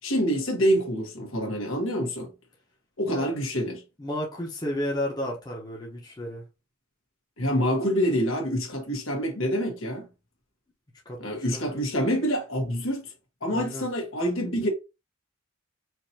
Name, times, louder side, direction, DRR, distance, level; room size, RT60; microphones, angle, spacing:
voice 1, 0.0-2.3 3.0-3.8 7.4-10.0 11.2-13.1 13.4-14.7, equal, 70° left, 1.6 m, -26 dB
voice 2, 4.0-6.4 11.0-11.8 13.5-13.9, left 1 dB, 20° left, 1.1 m, -33 dB
5.0 x 2.9 x 2.9 m
head